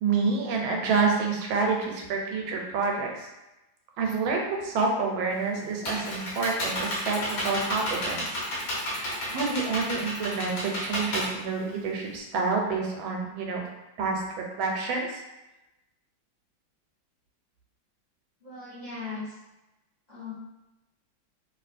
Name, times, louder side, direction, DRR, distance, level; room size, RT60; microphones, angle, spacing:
voice 1, 0.0-3.3 4.0-8.4 9.3-13.7 14.0-15.2, right 4 dB, 90° right, 0 dB, 1.4 m, -28 dB
Computer keyboard, 5.3-12.2, equal, 75° left, 1.6 m, -32 dB
voice 2, 18.4-19.3 20.1-20.3, left 4 dB, 25° left, -12 dB, 1.2 m, -38 dB
3.2 x 2.8 x 2.5 m, 0.99 s
omnidirectional pair, 2.1 m